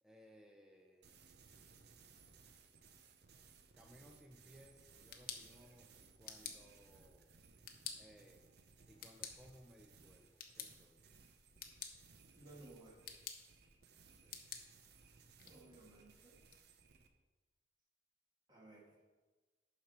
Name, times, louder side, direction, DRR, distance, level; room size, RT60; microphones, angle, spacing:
voice 1, 0.0-1.3 3.7-7.3 8.0-8.5 8.9-11.0 14.2-14.5, equal, 5° right, 1 dB, 0.6 m, -63 dB
sound 1, 1.0-17.1, right 5 dB, 60° right, 0.7 m, -64 dB
Flashlight clicking sound, 4.8-16.6, left 8 dB, 50° left, 0.9 m, -54 dB
voice 2, 12.3-13.0 15.4-16.4 18.5-18.9, right 2 dB, 25° right, -2 dB, 1.5 m, -58 dB
11.5 x 5.1 x 4.4 m, 1.3 s
head